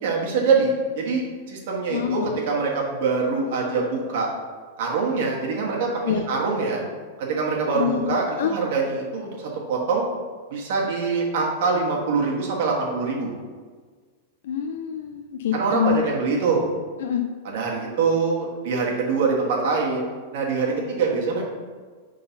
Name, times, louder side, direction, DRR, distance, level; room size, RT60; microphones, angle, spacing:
voice 1, 0.0-4.3 4.8-6.8 7.2-10.0 10.5-13.3 15.5-16.6 17.4-20.0 20.3-21.4, right 4 dB, 50° right, -2 dB, 1.3 m, -24 dB
voice 2, 1.9-2.4 6.1-6.3 7.7-8.5 14.4-16.0 17.0-17.2, left 10 dB, 60° left, 6 dB, 0.4 m, -26 dB
5.4 x 3.8 x 5.6 m, 1.5 s
supercardioid pair, 175°, 0 cm